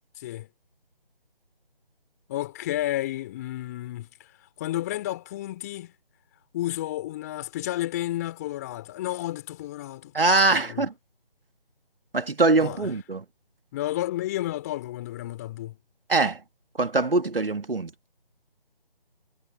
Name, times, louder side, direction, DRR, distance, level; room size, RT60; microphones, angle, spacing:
voice 1, 0.2-0.5 2.3-4.3 4.6-5.9 6.5-10.1 10.7-10.9 12.6-12.9 13.7-15.8, left 14 dB, 15° left, 2.8 m, -31 dB
voice 2, 10.1-10.9 12.1-13.2 16.1-16.4 16.8-17.9, right 3 dB, 70° right, 2.1 m, -22 dB
figure-of-eight pair, 155°, 29 cm